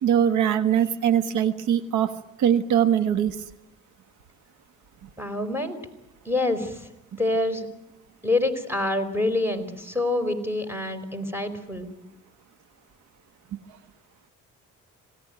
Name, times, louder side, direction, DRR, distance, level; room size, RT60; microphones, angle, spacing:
voice 1, 0.0-2.1 2.4-3.4, right 9 dB, 85° right, 11 dB, 1.4 m, -21 dB
voice 2, 5.2-5.8 6.2-6.8 7.2-7.7 8.2-11.9, left 2 dB, 5° right, 5 dB, 4.6 m, -26 dB
26.5 x 18.0 x 9.2 m, 0.90 s
cardioid pair, 90°, 30 cm